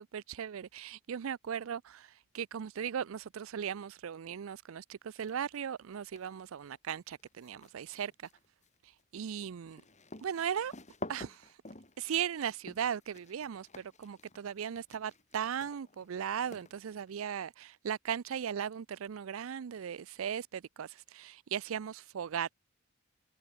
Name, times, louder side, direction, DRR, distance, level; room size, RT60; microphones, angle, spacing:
voice 1, 0.0-8.1 8.8-9.8 10.2-10.7 11.1-11.6 12.0-22.5, right 8 dB, 80° right, 0.4 m, -37 dB
sound 1, 5.2-5.6 6.0-17.1, left 2 dB, 35° left, 7.2 m, -50 dB
head